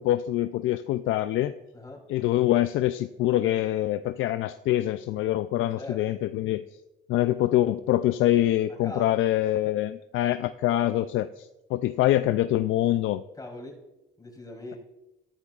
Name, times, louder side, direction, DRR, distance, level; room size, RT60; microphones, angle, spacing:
voice 1, 0.0-1.5 2.1-6.6 7.1-13.2, left 13 dB, 85° left, 11 dB, 0.4 m, -25 dB
voice 2, 1.7-2.0 5.6-6.0 8.8-9.2 13.4-13.8 14.2-14.8, left 2 dB, 20° left, -1 dB, 3.8 m, -41 dB
13.5 x 13.0 x 2.4 m, 0.95 s
cardioid pair, 90°, 20 cm